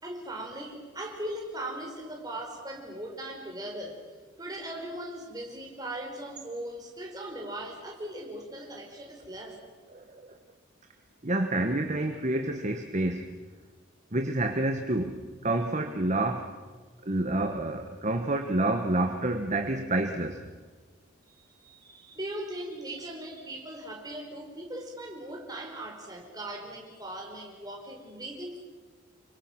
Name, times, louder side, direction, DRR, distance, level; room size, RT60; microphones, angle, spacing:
voice 1, 0.0-4.0 4.4-9.6 21.3-28.6, right 1 dB, 20° right, 0 dB, 4.9 m, -39 dB
voice 2, 9.9-10.4 11.2-13.3 14.1-16.5 17.0-20.4, right 2 dB, 35° right, 5 dB, 1.3 m, -28 dB
28.5 x 24.5 x 6.1 m, 1.4 s
head